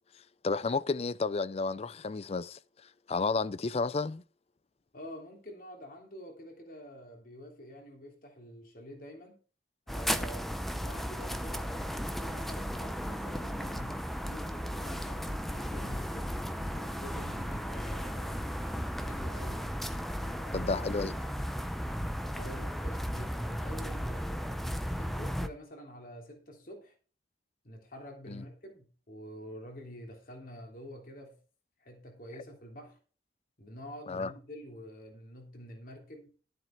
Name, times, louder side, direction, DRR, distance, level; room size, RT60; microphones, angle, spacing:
voice 1, 0.4-2.6 3.1-4.2 20.5-21.1 28.3-28.4 34.1-34.3, left 4 dB, 35° left, 0.4 m, -31 dB
voice 2, 4.9-9.4 9.9-16.4 16.7-18.6 19.0-19.8 20.1-20.7 20.9-21.1 22.3-26.9 27.6-31.4 31.8-33.0 33.6-36.3, equal, 55° left, 3.3 m, -48 dB
sound 1, 9.9-25.5, equal, ahead, 0.7 m, -35 dB
13.0 x 7.7 x 4.5 m
head